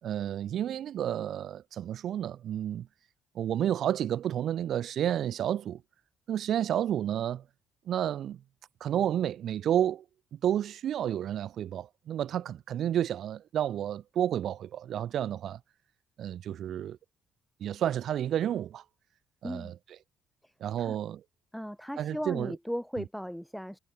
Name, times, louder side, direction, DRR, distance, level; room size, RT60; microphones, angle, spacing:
voice 1, 0.0-2.9 3.3-5.8 6.3-7.4 7.9-8.4 8.8-10.0 10.3-15.6 16.2-17.0 17.6-18.8 19.4-19.8 20.6-21.2 22.0-22.5 23.0-23.1, right 10 dB, 60° right, 2.7 m, -31 dB
voice 2, 21.5-23.8, equal, ahead, 3.1 m, -37 dB
cardioid pair, 145°, 0 cm